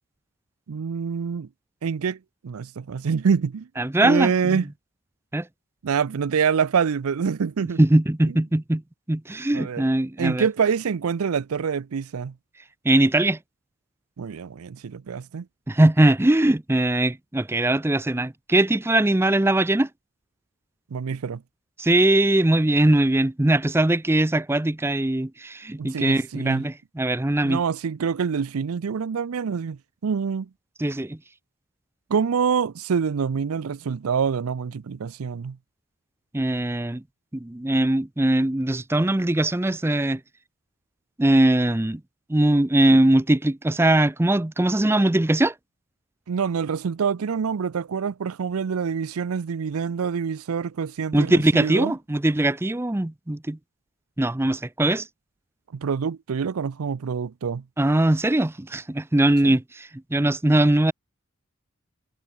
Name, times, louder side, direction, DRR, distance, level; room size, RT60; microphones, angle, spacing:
voice 1, 0.7-1.5 1.8-2.2 2.4-3.7 4.0-4.7 5.8-7.8 9.5-9.8 10.2-12.3 14.2-15.5 20.9-21.4 25.8-26.6 27.4-30.5 32.1-35.6 46.3-51.9 55.7-57.6 59.4-59.6, right 6 dB, 85° right, 0.5 m, -26 dB
voice 2, 3.8-4.6 5.3-5.5 7.8-8.8 9.1-10.5 12.8-13.4 15.7-19.9 21.8-27.6 30.8-31.2 36.3-37.0 37.3-40.2 41.2-42.0 42.3-45.5 51.1-53.6 54.2-55.1 57.8-60.9, right 1 dB, 10° right, 0.5 m, -21 dB
head